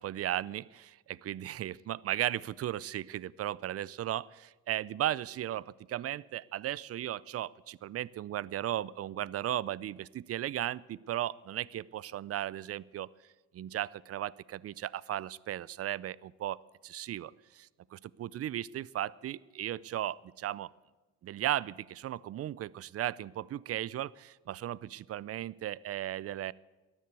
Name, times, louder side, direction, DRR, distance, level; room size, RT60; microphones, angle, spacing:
voice 1, 0.0-4.3 4.7-13.1 13.5-16.6 16.8-20.7 21.2-26.5, right 12 dB, 50° right, 23 dB, 0.5 m, -36 dB
13.5 x 11.0 x 8.2 m, 1.2 s
cardioid pair, 90°, 30 cm